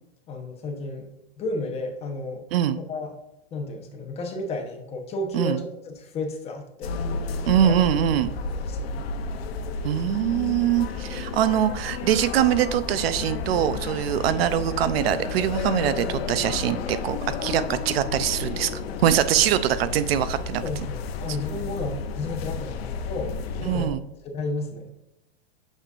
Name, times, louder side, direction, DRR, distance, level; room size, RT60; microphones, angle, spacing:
voice 1, 0.3-1.1 1.4-2.5 2.7-3.1 3.5-7.0 7.5-7.8 8.6-9.0 20.6-24.0 24.2-24.9, left 2 dB, 20° left, 3 dB, 1.0 m, -32 dB
sound 1, 6.8-23.9, left 4 dB, 75° left, 0.8 m, -32 dB
voice 2, 7.5-8.3 9.8-20.9 23.7-24.0, right 10 dB, 75° right, 13 dB, 0.6 m, -23 dB
6.6 x 6.0 x 2.5 m, 0.86 s
supercardioid pair, 150°, 30 cm